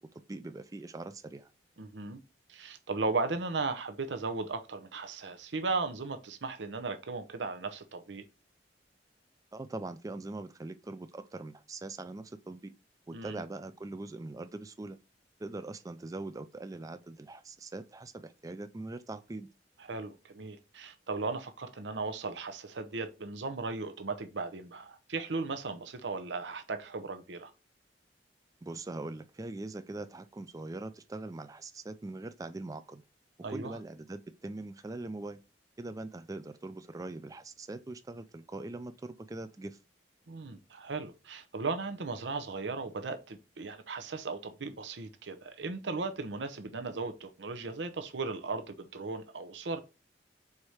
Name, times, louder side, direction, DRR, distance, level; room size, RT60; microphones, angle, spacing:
voice 1, 0.1-1.5 9.5-12.7 13.1-15.0 15.4-19.5 28.6-33.0 33.5-35.4 35.8-39.8, right 2 dB, 20° right, 0.3 m, -42 dB
voice 2, 1.8-2.2 2.5-8.2 13.1-13.4 19.9-27.5 33.4-33.8 40.3-49.8, right 3 dB, 85° right, 0.7 m, -36 dB
4.8 x 4.2 x 4.8 m
head